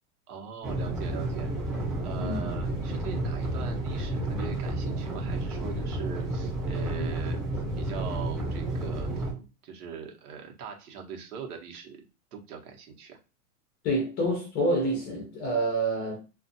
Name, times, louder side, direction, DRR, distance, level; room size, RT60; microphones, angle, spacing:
voice 1, 0.3-1.5 2.0-12.0 12.3-13.2, right 6 dB, 80° right, 1.1 m, -41 dB
sound 1, 0.6-9.3, right 1 dB, 5° right, 0.8 m, -31 dB
voice 2, 2.2-2.5 7.0-7.1 13.8-16.2, right 1 dB, 20° left, 0.5 m, -28 dB
2.4 x 2.4 x 2.6 m
supercardioid pair, 155°, 44 cm